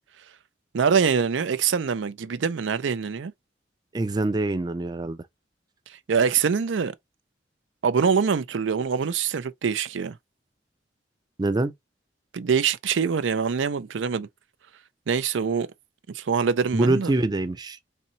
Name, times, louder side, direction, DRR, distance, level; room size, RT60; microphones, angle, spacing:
voice 1, 0.7-3.3 6.1-6.9 7.8-10.2 12.3-14.3 15.1-15.7 16.1-17.1, right 6 dB, 85° right, 0.5 m, -24 dB
voice 2, 3.9-5.2 11.4-11.7 16.7-17.8, right 2 dB, 20° right, 0.4 m, -24 dB
4.2 x 2.7 x 2.7 m
head